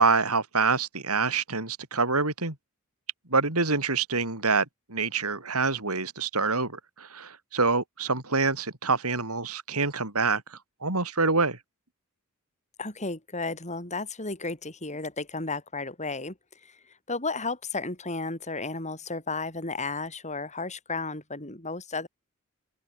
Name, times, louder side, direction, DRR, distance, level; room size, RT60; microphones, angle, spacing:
voice 1, 0.0-2.6 3.3-11.6, right 4 dB, 80° right, 5.7 m, -26 dB
voice 2, 12.8-16.4 16.6-16.8 17.1-22.1, left 3 dB, 30° left, 6.9 m, -33 dB
open air
head